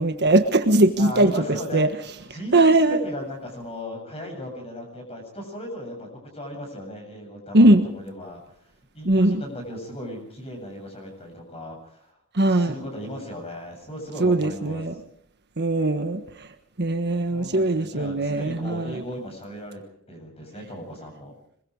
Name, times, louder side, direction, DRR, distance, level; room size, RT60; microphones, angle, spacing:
voice 1, 0.0-1.4 1.7-1.9 2.5-3.0 7.5-7.8 9.0-9.4 12.3-12.7 14.2-14.9 15.6-16.5 16.8-19.0, right 2 dB, 50° right, 7 dB, 1.4 m, -20 dB
voice 2, 1.0-1.9 2.3-6.1 6.3-8.4 8.9-12.1 12.5-14.8 17.3-19.8 20.1-21.3, equal, 25° left, 3 dB, 7.7 m, -36 dB
25.5 x 22.0 x 4.8 m, 0.67 s
head